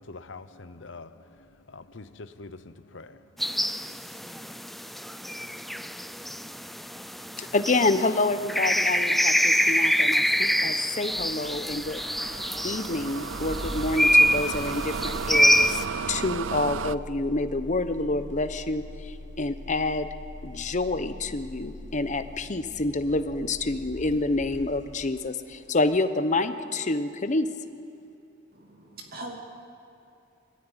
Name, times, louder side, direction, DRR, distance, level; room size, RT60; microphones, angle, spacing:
voice 1, 0.0-4.0, left 3 dB, 65° left, 12 dB, 0.9 m, -45 dB
sound 1, 3.4-15.8, equal, ahead, 0.4 m, -25 dB
voice 2, 7.4-12.0 12.6-15.7 16.1-18.8 19.4-20.1 20.4-27.5, left 2 dB, 40° left, 11 dB, 0.9 m, -27 dB
Engine starting, 11.1-25.2, left 1 dB, 35° right, 7.6 m, -42 dB
sound 2, 11.8-17.0, right 6 dB, 75° right, 0.4 m, -34 dB
voice 3, 28.5-29.4, right 2 dB, 50° right, 1 dB, 2.9 m, -41 dB
23.0 x 14.0 x 9.9 m, 2.7 s
head